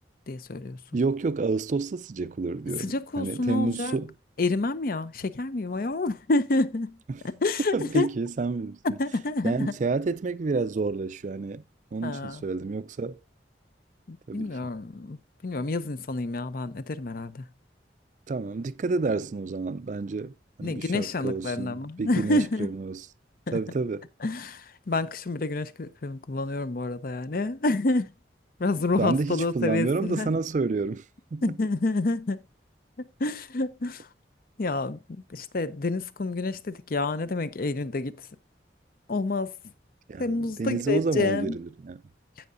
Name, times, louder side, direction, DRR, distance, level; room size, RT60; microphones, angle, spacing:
voice 1, 0.3-0.8 2.8-4.0 4.4-7.0 7.2-8.1 8.8-9.7 12.0-12.4 14.1-17.5 20.6-22.7 23.5-23.6 24.2-28.1 28.6-30.3 31.4-32.4 33.0-34.1 34.6-35.0 35.3-38.3 39.1-39.6 40.2-41.6, left 2 dB, 50° left, 0.6 m, -28 dB
voice 2, 0.9-4.1 7.1-7.2 7.7-9.0 9.4-11.6 11.9-13.2 14.3-14.5 18.3-20.3 20.6-23.0 23.5-24.0 29.0-31.0 31.3-31.5 40.1-42.0, right 3 dB, 45° right, 0.4 m, -29 dB
15.0 x 5.6 x 2.6 m
head